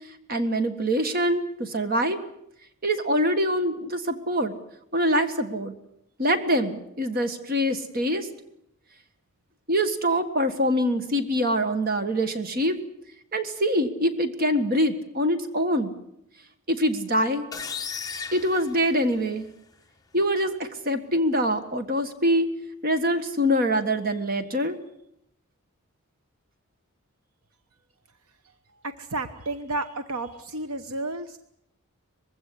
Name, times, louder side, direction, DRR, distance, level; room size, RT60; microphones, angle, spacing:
voice 1, 0.3-2.2 2.8-4.5 4.9-5.7 6.2-8.3 9.7-12.8 13.3-15.9 16.7-17.4 18.3-19.5 20.1-22.5 22.8-24.7, equal, 40° right, 8 dB, 1.6 m, -24 dB
sound 1, 17.5-19.5, left 6 dB, 15° left, 0.9 m, -36 dB
voice 2, 28.8-31.4, right 2 dB, 75° right, 9 dB, 1.1 m, -32 dB
21.0 x 16.5 x 10.0 m, 0.76 s
head